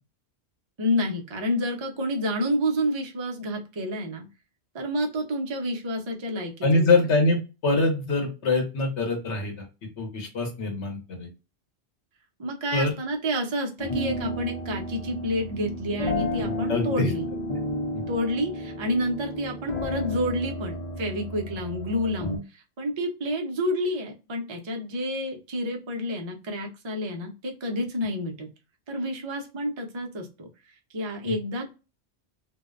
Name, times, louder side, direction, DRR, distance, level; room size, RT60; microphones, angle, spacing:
voice 1, 0.8-4.3 4.7-7.1 12.4-17.3 18.1-22.4 22.8-28.5 28.9-30.5 30.9-31.7, equal, 40° right, 3 dB, 0.4 m, -29 dB
voice 2, 6.6-9.7 10.0-11.3 12.7-12.9 16.7-17.1 17.9-18.0 31.2-31.3, left 2 dB, 85° left, 1 dB, 1.2 m, -24 dB
sound 1, 13.8-22.4, left 1 dB, 45° left, 0.6 m, -32 dB
2.6 x 2.1 x 2.3 m, 0.30 s
omnidirectional pair, 1.1 m